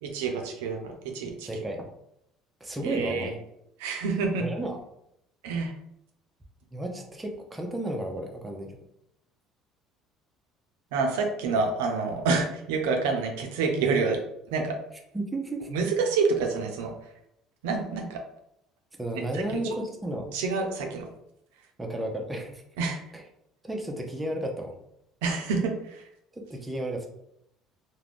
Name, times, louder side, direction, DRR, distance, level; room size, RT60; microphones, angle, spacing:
voice 1, 0.0-1.5 2.8-3.3 3.8-4.4 5.4-5.7 10.9-14.2 14.5-14.8 15.7-16.9 17.6-18.2 19.3-19.6 20.3-21.1 22.8-23.0 25.2-26.0, right 4 dB, 90° right, 3 dB, 0.4 m, -27 dB
voice 2, 1.4-1.9 2.6-3.3 4.4-4.8 6.7-8.8 15.1-15.7 19.0-20.3 21.8-22.6 23.1-23.2 23.6-24.8 26.3-27.1, right 1 dB, 15° right, 2 dB, 0.5 m, -33 dB
2.4 x 2.1 x 3.3 m, 0.79 s
supercardioid pair, 90°, 0 cm